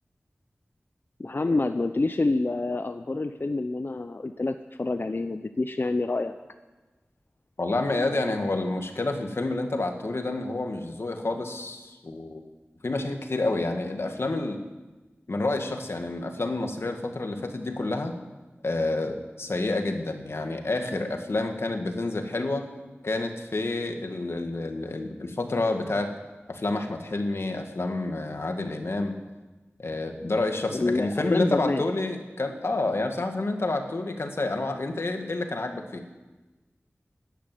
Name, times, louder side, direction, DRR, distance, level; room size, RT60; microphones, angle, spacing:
voice 1, 1.2-6.3 30.7-31.8, left 2 dB, 55° left, 8 dB, 0.6 m, -27 dB
voice 2, 7.6-12.4 12.8-14.6 15.3-18.2 18.6-22.7 23.0-26.1 26.5-29.2 29.8-36.0, left 2 dB, 70° left, 5 dB, 1.9 m, -29 dB
13.5 x 10.0 x 9.3 m, 1.2 s
wide cardioid pair, 50°, 4 cm